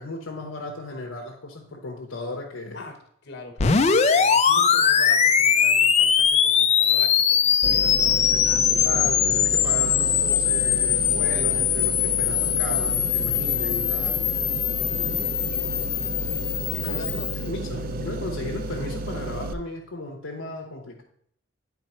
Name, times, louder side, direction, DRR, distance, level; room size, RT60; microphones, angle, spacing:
voice 1, 0.0-2.8 8.8-14.2 16.7-17.1 17.4-21.0, left 2 dB, 70° left, 0 dB, 0.8 m, -35 dB
voice 2, 3.2-9.1 14.9-15.4 16.8-17.2 17.7-17.9, left 2 dB, 50° left, 5 dB, 1.3 m, -41 dB
sound 1, 3.6-17.4, left 8 dB, 30° left, 0.4 m, -21 dB
sound 2, 7.6-19.5, right 1 dB, 40° right, 0.3 m, -32 dB
9.4 x 4.1 x 4.3 m, 0.67 s
head